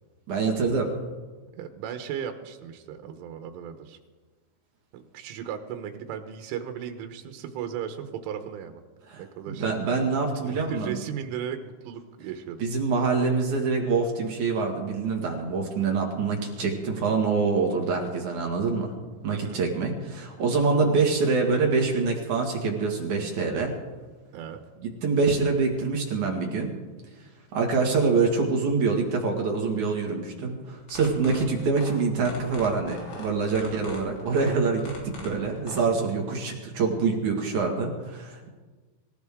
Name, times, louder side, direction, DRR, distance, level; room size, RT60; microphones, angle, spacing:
voice 1, 0.3-0.9 9.1-11.0 12.6-18.9 19.2-23.7 24.8-26.7 27.5-34.9 35.2-38.5, right 4 dB, 55° right, 0 dB, 2.5 m, -25 dB
voice 2, 1.6-4.0 4.9-8.8 9.2-9.8 10.5-12.6 19.3-19.6 24.3-24.6 33.6-33.9, right 8 dB, 85° right, 7 dB, 3.5 m, -36 dB
sound 1, 30.8-35.9, left 3 dB, 75° left, 5.7 m, -41 dB
25.0 x 14.5 x 3.6 m, 1.3 s
omnidirectional pair, 5.5 m